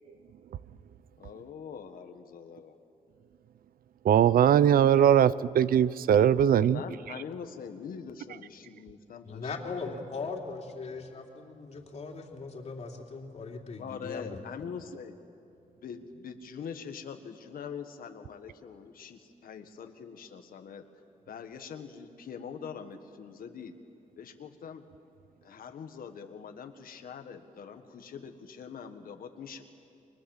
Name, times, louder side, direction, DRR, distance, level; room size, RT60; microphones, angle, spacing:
voice 1, 1.2-2.7 6.6-10.3 13.8-15.2 15.8-20.8 21.3-23.7 24.2-24.8 25.4-29.6, left 6 dB, 80° left, 7 dB, 1.6 m, -43 dB
voice 2, 4.0-6.8, right 9 dB, 80° right, 17 dB, 0.6 m, -21 dB
voice 3, 9.2-14.4, left 4 dB, 50° left, 1 dB, 3.0 m, -39 dB
30.0 x 23.5 x 7.4 m, 2.7 s
wide cardioid pair, 140°, 15 cm